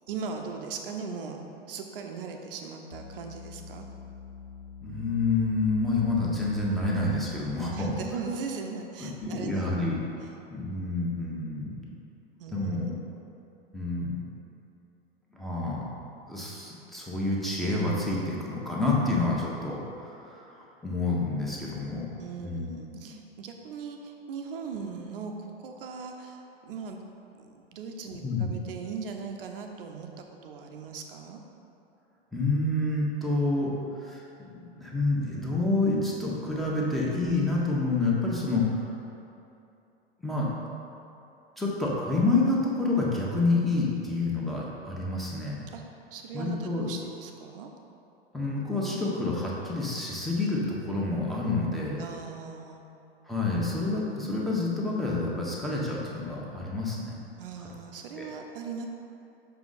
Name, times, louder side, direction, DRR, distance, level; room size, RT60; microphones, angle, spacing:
voice 1, 0.1-1.4 1.7-3.9 7.7-9.7 12.4-13.0 22.2-27.0 27.3-31.4 45.7-45.8 46.1-47.7 52.0-52.8 57.4-58.9, right 5 dB, 60° right, 3 dB, 0.8 m, -39 dB
sound 1, 2.9-8.2, left 6 dB, 85° left, 0.7 m, -46 dB
voice 2, 4.8-7.9 9.0-10.0 10.5-11.8 12.5-13.0 13.7-14.2 15.3-15.9 16.3-22.1 22.4-23.1 28.2-28.5 32.3-33.7 34.0-34.2 34.5-38.9 40.2-40.5 41.6-45.6 46.3-46.8 48.3-52.0 53.2-57.2 58.2-58.3, left 2 dB, ahead, -5 dB, 1.2 m, -28 dB
6.4 x 4.8 x 4.1 m, 2.8 s
figure-of-eight pair, 90°, 31 cm